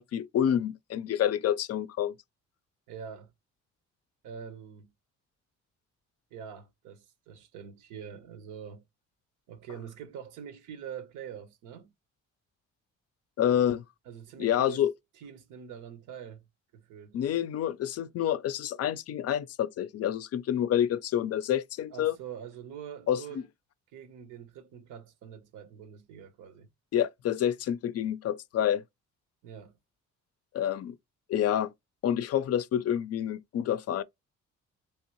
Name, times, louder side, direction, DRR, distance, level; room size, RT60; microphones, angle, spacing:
voice 1, 0.0-2.2 13.4-13.8 14.4-14.9 17.1-22.1 23.1-23.4 26.9-28.8 30.5-30.9 31.3-31.7 32.0-34.0, left 10 dB, 55° left, 0.4 m, -28 dB
voice 2, 2.9-3.3 4.2-4.9 6.3-8.8 9.5-11.9 14.1-14.8 15.2-16.4 16.7-17.2 21.9-23.5 23.9-26.7 29.4-29.7, right 8 dB, 90° right, 0.8 m, -44 dB
3.3 x 2.7 x 2.9 m
cardioid pair, 90°, 30 cm